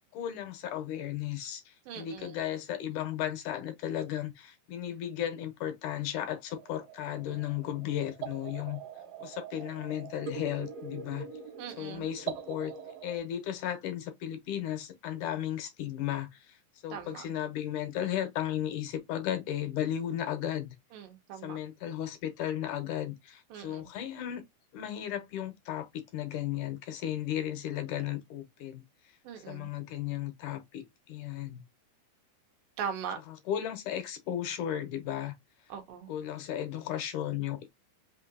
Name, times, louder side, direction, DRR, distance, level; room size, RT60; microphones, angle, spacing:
voice 1, 0.1-8.8 9.2-11.3 11.8-12.7 13.0-16.6 16.8-20.7 21.4-24.4 24.7-28.8 29.5-31.6 33.3-35.3 36.1-37.7, left 11 dB, 75° left, 2.1 m, -35 dB
voice 2, 1.9-2.3 11.6-12.1 16.9-17.2 20.9-21.6 23.5-23.9 29.2-29.7 32.8-33.2 35.7-36.1, right 7 dB, 80° right, 2.8 m, -40 dB
sound 1, 6.5-13.2, right 7 dB, 65° right, 1.7 m, -43 dB
5.7 x 2.7 x 2.6 m
omnidirectional pair, 3.9 m